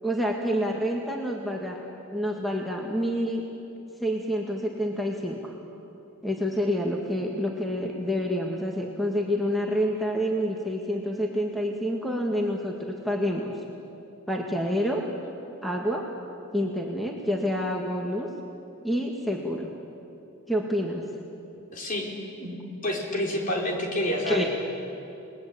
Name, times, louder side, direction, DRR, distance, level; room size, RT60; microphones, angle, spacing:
voice 1, 0.0-1.8 2.1-3.4 4.0-5.5 6.2-13.5 14.3-15.0 15.6-16.0 16.5-18.3 18.8-19.7 20.5-21.0 24.3-24.5, equal, ahead, -1 dB, 1.8 m, -28 dB
voice 2, 21.7-22.1 22.4-22.6 22.8-24.5, left 1 dB, 40° left, -1 dB, 4.3 m, -28 dB
30.0 x 20.5 x 8.7 m, 2.8 s
head